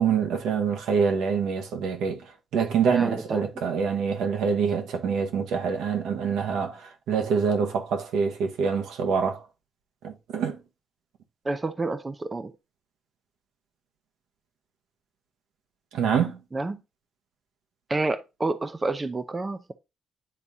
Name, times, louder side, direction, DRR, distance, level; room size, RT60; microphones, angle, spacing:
voice 1, 0.0-2.2 2.5-9.4 10.0-10.6 15.9-16.4, right 6 dB, 85° right, 1.1 m, -25 dB
voice 2, 2.9-3.6 11.4-12.5 16.5-16.8 17.9-19.7, right 2 dB, 25° right, 0.6 m, -29 dB
9.9 x 3.6 x 2.7 m
cardioid pair, 85°, 0 cm